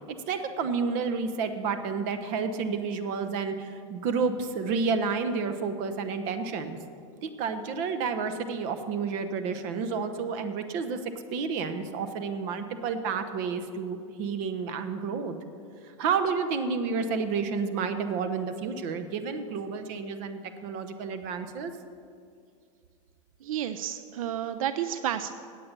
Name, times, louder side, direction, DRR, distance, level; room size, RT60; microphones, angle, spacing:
voice 1, 0.3-6.8 7.2-11.0 11.3-15.4 15.8-21.7, right 5 dB, 50° right, 9 dB, 0.9 m, -30 dB
voice 2, 23.4-25.3, right 10 dB, 85° right, 11 dB, 0.5 m, -31 dB
8.7 x 8.5 x 6.7 m, 2.3 s
supercardioid pair, 135°, 17 cm